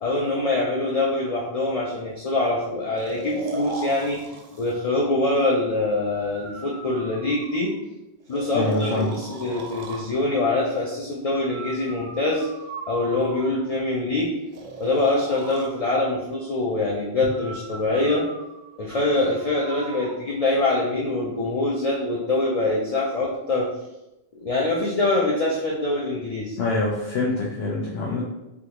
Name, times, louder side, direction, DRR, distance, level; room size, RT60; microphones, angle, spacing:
voice 1, 0.0-7.7 8.3-12.5 12.9-14.3 14.8-18.3 18.8-23.7 24.3-26.6, left 2 dB, 55° left, -3 dB, 0.4 m, -24 dB
Breathing, 3.0-4.8 6.1-7.8 8.3-10.1 11.5-13.7 14.5-15.7 17.3-20.2, right 3 dB, 55° right, 0.6 m, -38 dB
voice 2, 8.5-9.1 26.6-28.2, left 2 dB, 80° left, -3 dB, 0.9 m, -25 dB
3.5 x 2.3 x 2.8 m, 0.95 s
omnidirectional pair, 1.1 m